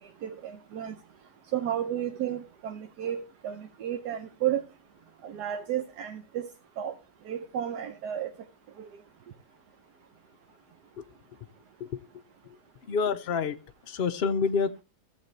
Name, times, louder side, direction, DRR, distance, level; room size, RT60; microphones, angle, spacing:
voice 1, 0.2-0.9 1.5-4.6 5.2-6.5 6.8-6.9 7.3-8.3 8.8-8.9, right 10 dB, 80° right, 1.3 m, -32 dB
voice 2, 12.9-14.8, left 5 dB, 75° left, 0.5 m, -28 dB
14.5 x 7.4 x 3.2 m
omnidirectional pair, 1.7 m